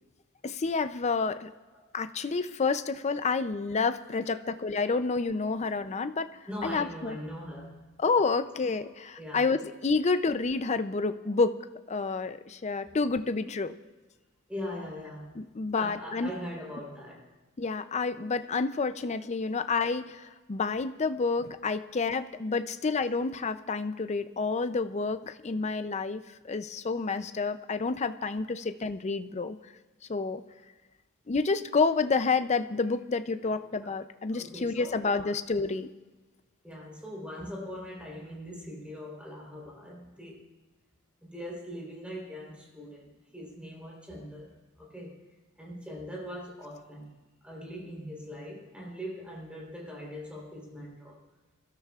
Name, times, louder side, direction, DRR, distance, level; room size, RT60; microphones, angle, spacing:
voice 1, 0.4-1.5 1.9-6.3 6.6-7.2 8.0-11.6 11.9-13.8 15.4-16.3 17.6-29.6 30.1-30.4 31.3-35.9, left 4 dB, 30° left, 11 dB, 0.5 m, -29 dB
voice 2, 5.4-5.7 6.5-7.8 8.8-8.9 9.2-9.4 14.5-15.4 15.7-17.3 21.5-21.6 33.4-33.6 34.3-35.3 36.6-40.4 41.2-45.2 45.6-47.1 47.4-51.2, equal, 5° right, -3 dB, 3.7 m, -41 dB
25.5 x 13.0 x 2.4 m, 1.2 s
head